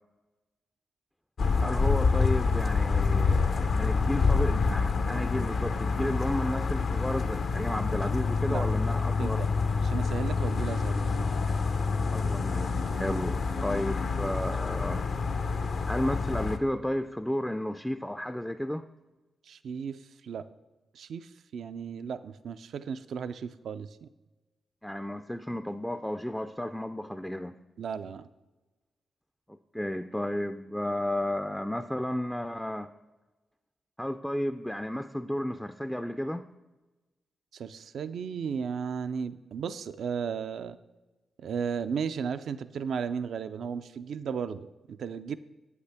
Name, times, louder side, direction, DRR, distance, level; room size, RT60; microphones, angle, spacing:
sound 1, 1.4-16.6, left 4 dB, 65° left, 0.6 m, -27 dB
voice 1, 1.6-9.4 12.1-15.0 15.9-18.8 24.8-27.5 29.7-32.9 34.0-36.5, left 1 dB, 5° left, 9 dB, 0.3 m, -33 dB
voice 2, 9.8-11.3 13.1-13.2 19.5-20.4 20.9-24.1 27.8-28.3 37.5-40.8 41.4-45.4, right 6 dB, 70° right, 12 dB, 0.3 m, -35 dB
8.1 x 7.9 x 3.4 m, 1.1 s
supercardioid pair, 45°, 0 cm